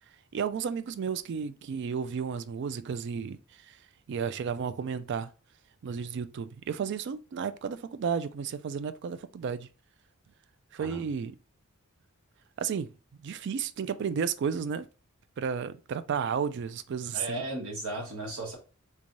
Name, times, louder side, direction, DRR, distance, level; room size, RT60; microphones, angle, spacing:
voice 1, 0.3-3.4 3.7-3.8 4.1-5.3 5.8-9.7 10.7-11.3 12.6-12.9 13.2-14.9 15.4-17.4, right 6 dB, 55° right, 0.3 m, -32 dB
voice 2, 17.1-18.6, right 1 dB, 80° right, 1.3 m, -36 dB
3.4 x 3.2 x 2.5 m
head